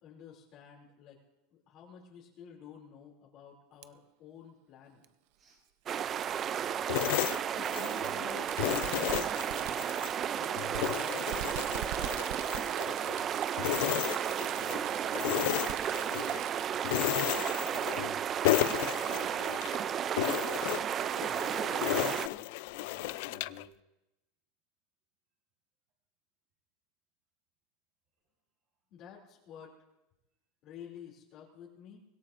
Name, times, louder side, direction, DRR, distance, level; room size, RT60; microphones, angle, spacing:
voice 1, 0.0-1.2 1.5-5.0 7.5-8.5 8.9-9.9 10.3-11.8 28.9-29.7 30.6-32.0, left 9 dB, 45° left, -3 dB, 2.8 m, -50 dB
Fireworks, 3.8-3.9 5.0-5.1 6.4-6.5 8.2-16.9, right 12 dB, 65° right, 0.7 m, -43 dB
sound 1, 5.9-22.3, right 9 dB, 30° right, 0.4 m, -33 dB
sound 2, 6.9-8.2 8.6-10.2 10.6-13.3 13.6-14.8 15.2-16.4 16.8-18.2 18.4-19.8 20.2-23.6, left 18 dB, 65° left, 0.4 m, -33 dB
voice 2, 14.0-20.7 21.2-23.8, right 2 dB, 45° right, -4 dB, 4.9 m, -58 dB
24.5 x 17.0 x 2.6 m, 0.96 s
supercardioid pair, 145°, 0 cm